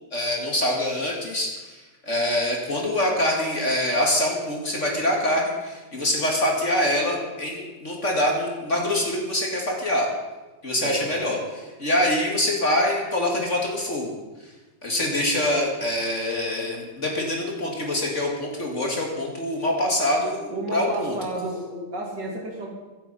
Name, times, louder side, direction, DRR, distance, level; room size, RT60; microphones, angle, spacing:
voice 1, 0.1-10.1 10.6-14.1 14.8-21.1, left 1 dB, 40° left, -1 dB, 2.6 m, -25 dB
voice 2, 10.8-11.2 20.5-22.7, right 1 dB, 65° right, 0 dB, 3.5 m, -31 dB
24.0 x 8.2 x 5.6 m, 1.2 s
omnidirectional pair, 2.0 m